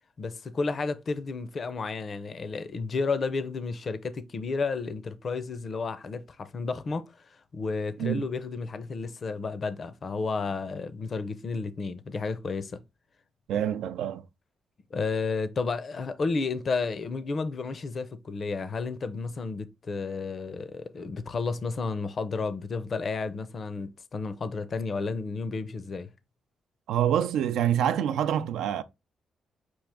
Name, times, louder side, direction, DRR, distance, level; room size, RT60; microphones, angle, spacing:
voice 1, 0.2-7.1 7.5-12.8 14.9-26.1, left 4 dB, 45° left, 0.5 m, -32 dB
voice 2, 13.5-14.2 26.9-28.8, right 10 dB, 90° right, 0.4 m, -26 dB
6.1 x 2.5 x 3.5 m
cardioid pair, 90°, 0 cm